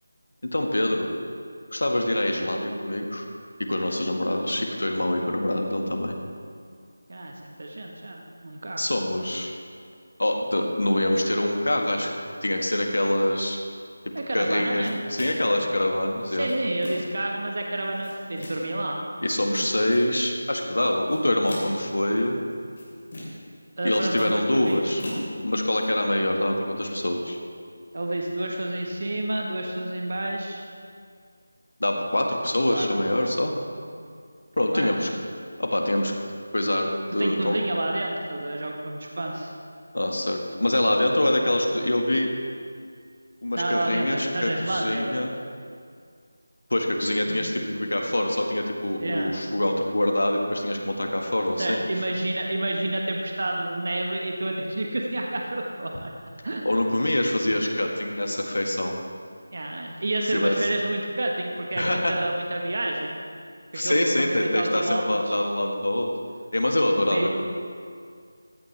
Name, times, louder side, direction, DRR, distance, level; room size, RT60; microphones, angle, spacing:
voice 1, 0.5-1.1 1.7-3.3 3.6-6.1 8.8-9.5 10.2-12.1 12.4-13.6 14.0-16.5 19.2-22.4 23.8-25.0 25.4-27.4 31.8-33.5 34.6-35.1 35.6-36.1 36.5-37.6 39.9-42.3 43.4-45.3 46.7-51.8 56.6-59.0 60.3-60.5 61.8-62.1 63.7-66.1 66.5-67.3, left 1 dB, 80° left, 2 dB, 1.6 m, -25 dB
voice 2, 7.1-8.9 14.1-14.9 16.3-19.0 23.8-24.9 27.9-30.6 32.7-32.9 34.7-35.0 37.2-39.5 43.6-45.3 47.3-47.4 49.0-49.4 51.6-56.1 56.4-56.6 59.5-63.2 63.7-65.4 67.1-67.3, right 1 dB, 50° right, 0 dB, 1.2 m, -29 dB
sound 1, 14.8-15.6 16.2-17.2 17.8-18.8 19.3-20.2 20.9-21.9 22.5-23.5 23.8-25.9, left 1 dB, 40° left, 3.3 m, -39 dB
15.0 x 10.0 x 3.3 m, 2.2 s
figure-of-eight pair, 170°, 0 cm